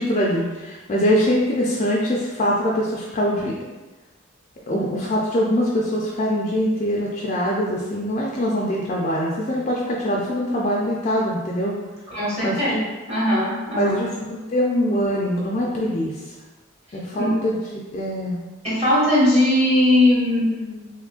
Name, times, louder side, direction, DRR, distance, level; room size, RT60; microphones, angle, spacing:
voice 1, 0.0-3.5 4.7-11.7 12.4-12.8 13.8-16.1 16.9-18.4, equal, 35° left, -4 dB, 0.3 m, -23 dB
voice 2, 12.1-12.8 13.1-14.0 17.2-17.3 18.6-20.9, left 1 dB, 30° right, -9 dB, 1.2 m, -19 dB
3.0 x 2.4 x 3.6 m, 1.2 s
head